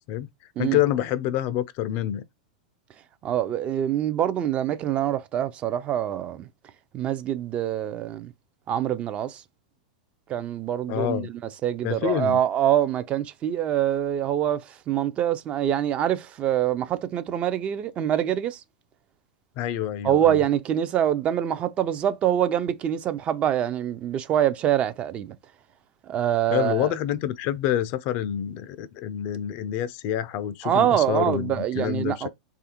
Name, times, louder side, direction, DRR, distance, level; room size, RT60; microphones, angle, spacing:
voice 1, 0.6-2.2 10.9-11.3 11.8-12.4 19.6-20.4 26.5-32.3, left 11 dB, 50° left, 0.4 m, -27 dB
voice 2, 3.2-6.5 6.9-8.3 8.7-9.4 10.3-18.6 20.0-25.4 26.1-26.9 30.6-32.3, right 10 dB, 30° right, 0.4 m, -25 dB
3.3 x 2.4 x 2.8 m
hypercardioid pair, 105°, 4 cm